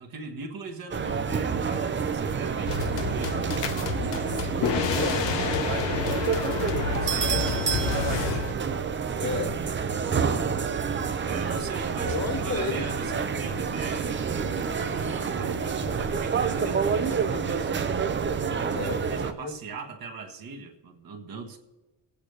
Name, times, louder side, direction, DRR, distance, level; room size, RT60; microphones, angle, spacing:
voice 1, 0.0-4.0 6.9-8.5 9.9-10.3 11.2-17.7 18.6-21.6, right 4 dB, 50° right, 2 dB, 1.4 m, -40 dB
sound 1, 0.9-19.3, right 6 dB, 25° right, 0.6 m, -28 dB
sound 2, 2.7-8.5, left 8 dB, 80° left, 1.0 m, -30 dB
voice 2, 4.0-5.2 9.2-9.6 11.9-12.9 18.6-19.5, left 3 dB, 35° left, 4 dB, 1.8 m, -33 dB
Wind instrument woodwind instrument, 12.9-17.7, left 5 dB, 55° left, 1.4 m, -51 dB
21.5 x 8.6 x 3.3 m, 1.1 s
cardioid pair, 155°, 43 cm